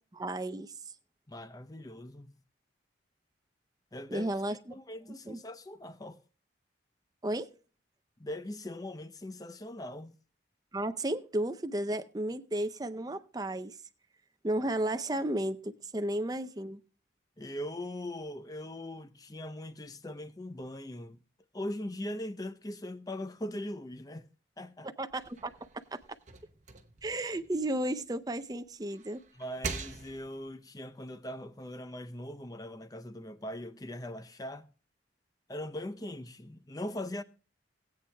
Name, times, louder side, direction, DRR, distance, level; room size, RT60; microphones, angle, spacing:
voice 1, 0.1-0.7 4.1-4.6 5.3-5.4 7.2-7.5 10.7-13.7 14.4-16.8 24.8-25.5 25.9-26.0 27.0-29.2, right 1 dB, 20° right, 0.5 m, -33 dB
voice 2, 1.3-2.4 3.9-4.3 4.7-6.2 8.2-10.1 17.4-21.2 21.5-24.3 24.6-24.9 29.3-34.7 35.5-37.2, left 1 dB, 20° left, 0.6 m, -40 dB
sound 1, 25.1-28.3 28.7-30.5, right 4 dB, 40° right, 0.8 m, -43 dB
19.5 x 8.5 x 2.2 m
head